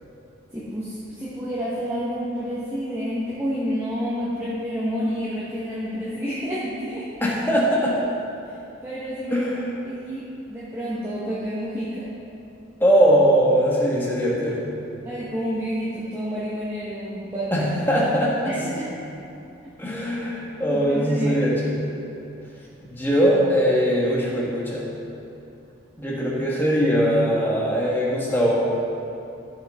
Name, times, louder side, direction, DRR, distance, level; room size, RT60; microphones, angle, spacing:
voice 1, 0.5-7.1 8.8-9.4 9.8-10.2 10.5-12.1 15.0-17.7 18.4-18.9 20.7-21.4, equal, 15° right, -9 dB, 1.3 m, -29 dB
voice 2, 7.2-8.1 9.3-9.7 12.8-14.8 17.5-18.5 19.8-21.7 22.9-24.8 26.0-28.5, equal, 10° left, -4 dB, 1.4 m, -21 dB
14.0 x 6.5 x 3.7 m, 2.9 s
head